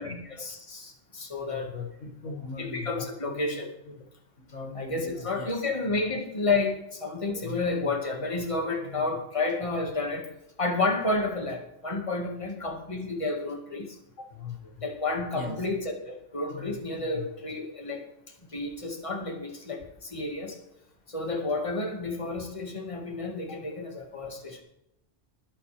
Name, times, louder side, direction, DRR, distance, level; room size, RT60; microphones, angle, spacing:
voice 1, 0.3-1.7 2.6-3.7 4.7-10.3 10.6-13.9 14.8-18.0 18.5-20.6 21.1-24.6, left 3 dB, 25° left, 2 dB, 2.0 m, -31 dB
voice 2, 1.5-3.6 3.9-4.0 4.4-5.6 7.3-8.3 8.8-9.0 14.2-14.9 15.3-15.6 16.5-16.8 17.1-17.3, left 4 dB, 90° left, 1 dB, 2.5 m, -40 dB
21.0 x 8.6 x 3.4 m, 0.84 s
omnidirectional pair, 1.2 m